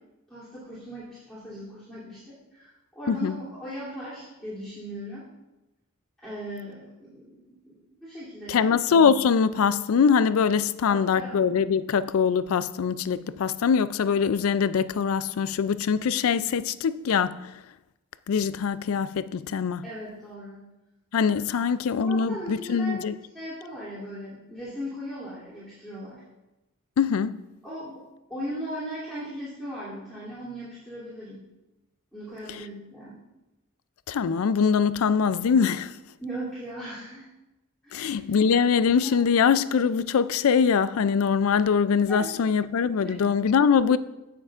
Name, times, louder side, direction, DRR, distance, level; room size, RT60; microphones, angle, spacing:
voice 1, 0.3-2.7 2.9-5.3 6.2-8.7 10.8-11.3 19.8-20.6 21.5-21.6 22.0-23.0 23.3-26.2 27.6-27.9 28.3-31.4 32.1-33.2 36.2-37.3 37.8-38.1 39.0-39.1 42.1-42.4 43.0-43.2, equal, ahead, 2.9 m, -38 dB
voice 2, 8.5-17.4 18.3-19.8 21.1-23.1 27.0-27.4 34.1-35.9 37.9-44.0, left 6 dB, 70° left, 0.4 m, -23 dB
16.5 x 6.7 x 2.5 m
head